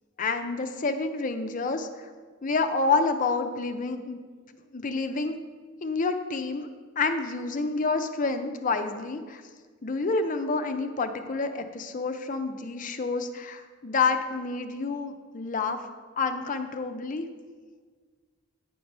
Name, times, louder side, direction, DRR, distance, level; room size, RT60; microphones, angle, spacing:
voice 1, 0.2-1.9 2.4-4.2 4.7-5.4 5.8-6.7 7.0-9.4 9.8-15.8 16.2-17.2, left 4 dB, 40° left, 7 dB, 0.5 m, -28 dB
9.2 x 4.6 x 5.3 m, 1.5 s
head